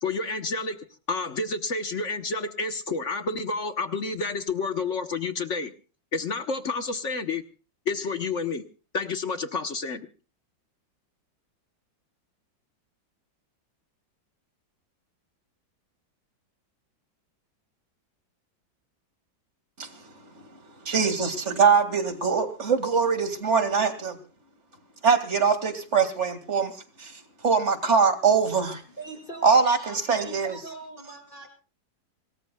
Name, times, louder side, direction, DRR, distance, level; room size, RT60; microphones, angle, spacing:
voice 1, 0.0-5.7 6.1-7.4 7.9-8.7 8.9-10.1, left 4 dB, 45° left, 8 dB, 1.1 m, -29 dB
voice 2, 19.8-20.5 20.8-24.2 25.0-28.8 29.4-30.6, right 5 dB, 35° right, 9 dB, 2.3 m, -23 dB
voice 3, 29.0-31.5, right 3 dB, 25° left, 0 dB, 5.7 m, -41 dB
26.0 x 19.5 x 2.3 m, 0.36 s
omnidirectional pair, 2.1 m